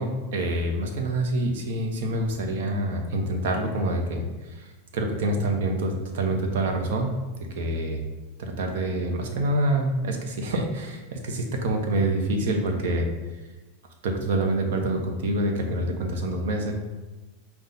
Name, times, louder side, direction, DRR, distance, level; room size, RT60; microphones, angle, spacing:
voice 1, 0.0-4.7 4.9-7.2 7.5-8.0 8.4-13.1 14.0-16.7, right 1 dB, 75° right, 3 dB, 0.8 m, -26 dB
5.5 x 2.3 x 3.8 m, 1.1 s
supercardioid pair, 140°, 0 cm